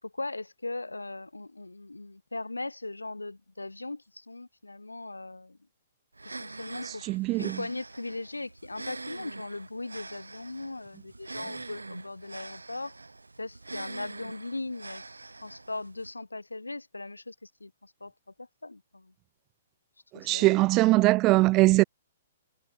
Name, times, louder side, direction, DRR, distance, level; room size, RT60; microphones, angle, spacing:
voice 1, 0.0-5.6 6.2-7.1 7.4-13.0 13.4-15.0 15.4-18.1 18.4-19.1 20.1-20.6, left 2 dB, 90° left, 5.7 m, -39 dB
sound 1, 6.1-16.1, right 3 dB, 85° right, 1.2 m, -44 dB
voice 2, 7.0-7.6 20.1-21.8, right 20 dB, 30° right, 0.4 m, -21 dB
figure-of-eight pair, 125°, 0 cm